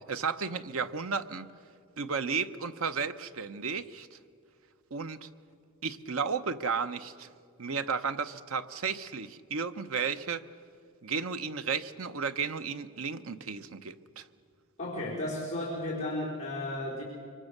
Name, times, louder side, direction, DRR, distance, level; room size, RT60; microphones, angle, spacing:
voice 1, 0.1-1.5 2.0-4.2 4.9-5.3 5.8-7.3 7.6-10.5 11.0-14.3, right 5 dB, 75° right, 10 dB, 0.9 m, -33 dB
voice 2, 14.8-17.0, left 1 dB, 35° left, -5 dB, 4.0 m, -34 dB
24.5 x 23.5 x 6.7 m, 2.3 s
head